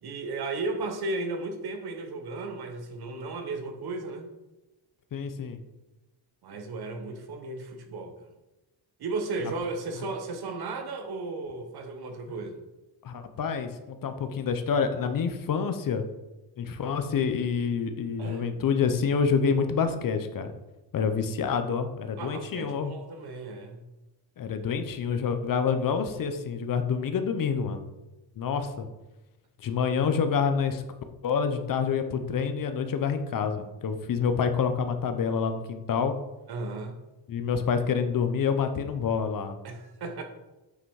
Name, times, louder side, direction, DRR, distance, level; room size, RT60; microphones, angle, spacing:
voice 1, 0.0-4.3 6.4-8.3 9.0-12.6 18.2-18.4 22.2-23.8 36.5-37.0 39.6-40.2, right 3 dB, 55° right, 5 dB, 1.5 m, -35 dB
voice 2, 5.1-5.6 13.0-16.1 16.6-20.5 20.9-22.9 24.4-27.9 28.4-28.9 29.6-30.8 31.2-36.1 37.3-39.6, left 6 dB, 50° left, 8 dB, 1.0 m, -27 dB
8.2 x 6.0 x 4.9 m, 1.0 s
cardioid pair, 110°, 44 cm